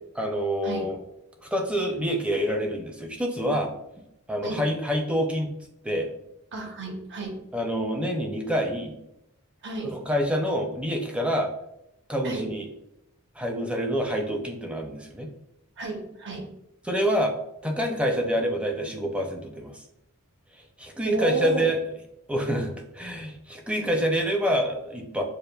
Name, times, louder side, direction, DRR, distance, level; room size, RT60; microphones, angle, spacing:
voice 1, 0.2-1.0 1.4-3.7 4.3-5.5 5.8-6.1 7.5-9.0 9.8-11.5 12.1-12.7 13.4-15.3 16.8-17.4 17.6-19.8 20.8-21.8 22.3-25.2, equal, 5° right, 2 dB, 0.4 m, -27 dB
voice 2, 6.5-7.4 9.6-10.0 12.2-12.5 15.8-16.5 21.0-21.7, right 3 dB, 55° right, 2 dB, 0.8 m, -31 dB
6.5 x 2.5 x 2.2 m, 0.83 s
head